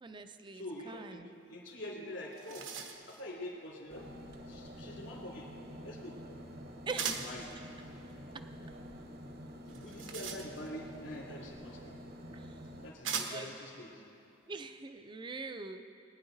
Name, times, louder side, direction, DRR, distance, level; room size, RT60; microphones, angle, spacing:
voice 1, 0.0-1.3 6.9-7.3 8.3-8.4 12.3-12.6 13.3-13.5 14.5-15.9, right 4 dB, 25° right, 8 dB, 0.4 m, -43 dB
voice 2, 0.5-2.7 3.1-4.1 4.5-5.5 5.8-6.2 6.9-7.5 9.7-11.9 12.3-12.4 12.8-14.0, left 1 dB, 70° left, -1 dB, 2.9 m, -45 dB
sound 1, 1.8-1.9 2.2-3.2 7.0-7.4 9.7-10.9 12.0-12.1 13.0-13.6, right 6 dB, 75° right, 1.1 m, -39 dB
sound 2, 3.9-12.9, equal, 50° right, 0.9 m, -48 dB
22.0 x 9.7 x 4.0 m, 2.6 s
head